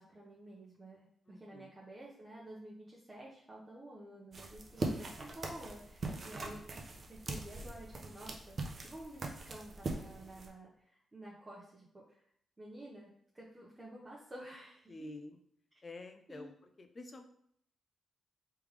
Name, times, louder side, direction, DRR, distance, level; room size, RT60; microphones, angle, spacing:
voice 1, 0.0-6.6 7.1-10.7 11.1-12.2 12.6-15.1 16.3-16.5, right 1 dB, 30° right, -6 dB, 1.0 m, -51 dB
voice 2, 1.3-1.7 14.9-15.4 15.8-16.5 16.8-17.2, left 2 dB, 40° left, 5 dB, 0.6 m, -48 dB
sound 1, 4.3-10.5, right 2 dB, 50° right, 0.7 m, -41 dB
3.4 x 3.3 x 3.3 m, 0.65 s
supercardioid pair, 50°, 0 cm